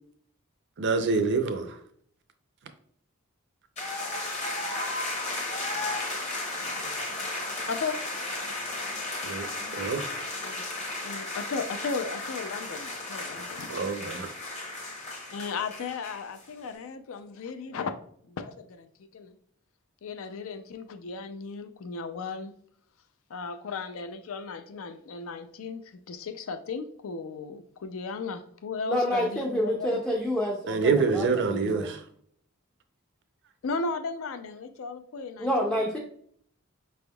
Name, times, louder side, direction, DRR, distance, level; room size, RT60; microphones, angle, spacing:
voice 1, 0.8-1.8 9.2-9.5 9.7-10.1 13.7-14.3 30.7-32.0, right 4 dB, 55° right, 0.5 m, -26 dB
sound 1, 3.8-16.4, left 2 dB, 35° left, 0.9 m, -34 dB
voice 2, 11.0-13.7 15.3-17.9 18.3-18.9 19.1-19.3 20.0-22.5 23.3-25.8 26.1-30.0 33.6-35.8, left 4 dB, 70° left, 0.4 m, -35 dB
voice 3, 28.9-31.9 35.4-36.0, equal, 5° left, 0.4 m, -28 dB
5.0 x 3.4 x 2.2 m
head